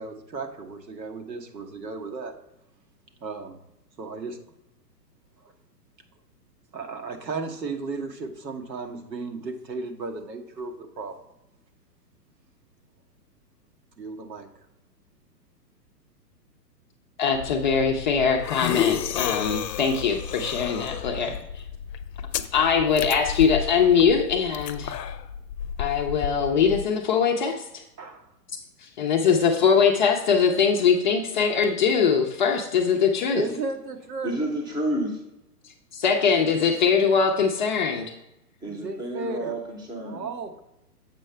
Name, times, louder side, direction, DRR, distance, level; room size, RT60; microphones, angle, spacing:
voice 1, 0.0-2.3 3.2-3.7 4.0-4.4 6.7-11.2 14.0-14.5 28.0-28.3 33.3-34.4 38.6-39.5 40.0-40.6, right 3 dB, 85° right, 4 dB, 1.3 m, -34 dB
voice 2, 17.2-21.6 22.5-25.0 25.8-27.8 28.8-33.4 35.6-38.2, left 6 dB, 30° left, 2 dB, 0.5 m, -22 dB
sound 1, 17.3-26.8, left 9 dB, 75° left, 0.6 m, -32 dB
voice 3, 34.2-35.2 38.6-40.3, right 1 dB, 10° right, 3 dB, 0.8 m, -30 dB
7.5 x 5.4 x 3.2 m, 0.86 s
hypercardioid pair, 125°, 49 cm